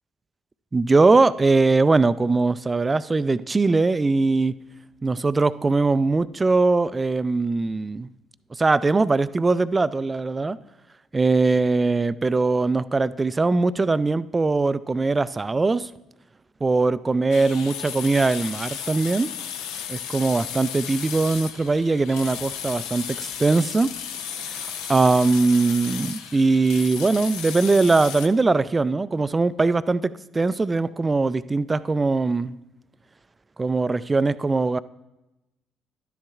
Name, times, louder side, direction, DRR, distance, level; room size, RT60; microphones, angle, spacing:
voice 1, 0.7-4.5 5.0-8.1 8.5-10.6 11.1-15.9 16.6-19.3 19.9-23.9 24.5-32.6 33.6-34.8, right 3 dB, 25° right, 16 dB, 0.4 m, -21 dB
sound 1, 17.3-28.3, left 8 dB, 70° left, 0.6 m, -34 dB
12.0 x 10.5 x 2.4 m, 0.96 s
hypercardioid pair, 55°, 0 cm